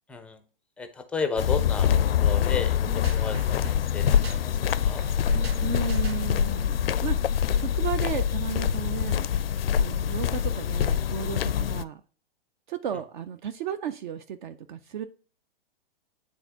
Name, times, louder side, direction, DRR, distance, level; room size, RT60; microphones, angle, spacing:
voice 1, 0.1-0.4 0.8-5.0, left 5 dB, 5° left, 8 dB, 0.4 m, -34 dB
sound 1, 1.4-11.8, left 8 dB, 75° left, 0.4 m, -25 dB
sound 2, 2.8-3.2 5.3-5.7, right 4 dB, 35° right, 1.9 m, -40 dB
sound 3, 3.0-6.5, right 3 dB, 85° right, 0.9 m, -41 dB
voice 2, 5.6-7.2 7.5-9.3 9.8-12.0 12.7-15.1, right 9 dB, 55° right, 10 dB, 0.6 m, -34 dB
9.7 x 3.6 x 2.8 m, 0.41 s
hypercardioid pair, 115°, 29 cm